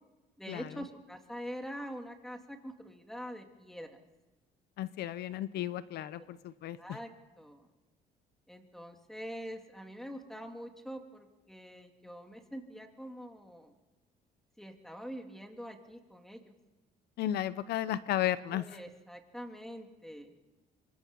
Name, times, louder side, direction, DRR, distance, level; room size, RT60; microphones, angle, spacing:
voice 1, 0.4-4.0 6.8-7.1 7.4-7.7 8.5-13.7 14.6-16.6 18.5-20.3, equal, ahead, 4 dB, 2.8 m, -44 dB
voice 2, 4.8-7.0 17.2-18.8, left 12 dB, 75° left, 15 dB, 0.8 m, -34 dB
26.0 x 23.5 x 5.5 m, 1.2 s
cardioid pair, 110°, 17 cm